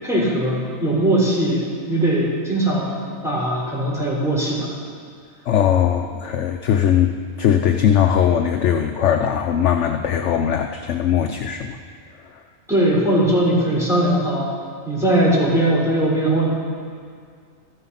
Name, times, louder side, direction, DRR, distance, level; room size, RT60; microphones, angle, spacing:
voice 1, 0.0-4.8 12.7-14.5 14.8-16.5, right 1 dB, ahead, -7 dB, 4.1 m, -20 dB
voice 2, 5.5-7.1 7.4-11.8 12.3-12.4, left 9 dB, 60° left, 5 dB, 0.9 m, -19 dB
14.0 x 13.0 x 5.6 m, 2.1 s
omnidirectional pair, 1.5 m